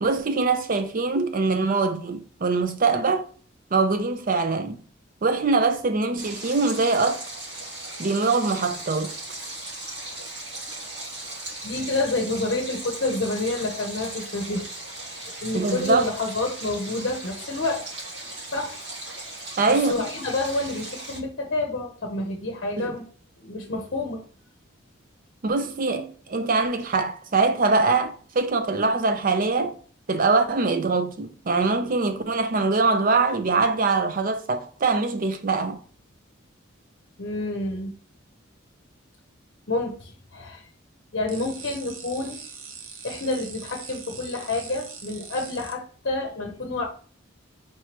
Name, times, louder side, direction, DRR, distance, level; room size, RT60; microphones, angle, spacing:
voice 1, 0.0-3.3 3.7-4.8 5.2-7.2 8.0-9.1 15.5-16.1 19.6-20.1 22.8-22.9 25.4-29.8 30.1-35.8, right 3 dB, 45° right, 0.5 m, -23 dB
Stream, 6.2-21.2, right 2 dB, 60° right, 2.2 m, -37 dB
voice 2, 11.6-14.6 15.1-17.8 18.5-18.8 19.7-23.0 23.4-24.2 37.2-37.9 39.7-40.6 41.1-42.4 43.0-46.8, left 2 dB, 55° left, 0.7 m, -28 dB
sound 1, 41.3-45.7, right 5 dB, 80° right, 0.8 m, -41 dB
4.5 x 3.1 x 2.9 m
head